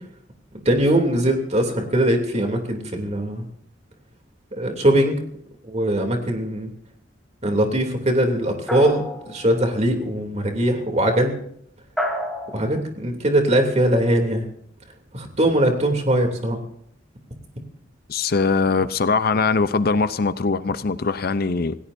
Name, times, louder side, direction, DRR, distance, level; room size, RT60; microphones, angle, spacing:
voice 1, 0.6-3.4 4.6-5.1 5.6-6.7 7.4-11.3 12.5-14.5 15.1-16.6, right 1 dB, 35° right, 3 dB, 2.9 m, -21 dB
sound 1, 8.7-9.7 12.0-12.8, left 1 dB, ahead, 2.7 m, -29 dB
voice 2, 18.1-21.7, left 4 dB, 50° left, 13 dB, 0.6 m, -21 dB
27.0 x 17.0 x 2.7 m, 0.70 s
head